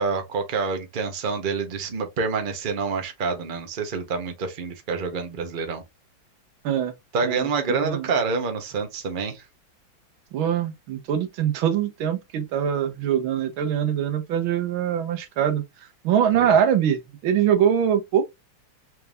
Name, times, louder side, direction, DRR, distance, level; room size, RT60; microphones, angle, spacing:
voice 1, 0.0-5.8 7.1-9.4 16.3-16.5, right 4 dB, 45° right, 0.6 m, -27 dB
voice 2, 7.2-8.1 10.3-15.6 16.0-18.2, right 9 dB, 90° right, 1.7 m, -23 dB
4.5 x 3.5 x 2.4 m
omnidirectional pair, 2.1 m